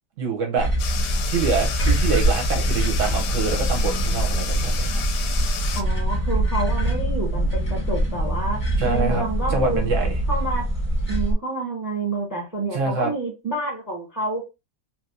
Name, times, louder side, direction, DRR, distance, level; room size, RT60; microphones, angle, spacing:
voice 1, 0.2-0.7 1.3-5.0 8.8-10.1 12.7-13.1, right 5 dB, 60° right, 0.8 m, -25 dB
sound 1, 0.5-11.3, right 1 dB, 20° left, 1.2 m, -23 dB
sound 2, 0.8-5.8, left 8 dB, 70° left, 1.1 m, -32 dB
voice 2, 5.7-9.8 10.3-10.7 11.1-14.4, right 2 dB, 15° right, 0.9 m, -28 dB
3.2 x 2.9 x 2.5 m
omnidirectional pair, 2.0 m